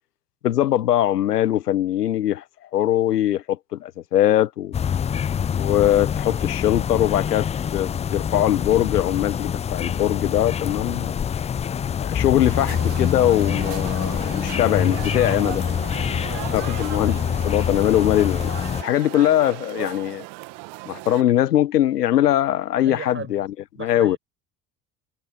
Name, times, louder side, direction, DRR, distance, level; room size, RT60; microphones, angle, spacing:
voice 1, 0.4-2.4 2.7-4.7 5.5-11.1 12.0-15.7 16.5-17.2 17.4-18.5 18.8-20.2 20.9-23.5 23.8-24.2, left 12 dB, 85° left, 0.8 m, -21 dB
sound 1, 4.7-18.8, left 8 dB, 15° left, 0.4 m, -25 dB
sound 2, 12.4-21.2, right 25 dB, 60° right, 1.6 m, -37 dB
voice 2, 15.9-16.6 22.8-23.3 23.8-24.2, right 5 dB, 25° right, 5.8 m, -36 dB
figure-of-eight pair, 65°, 46 cm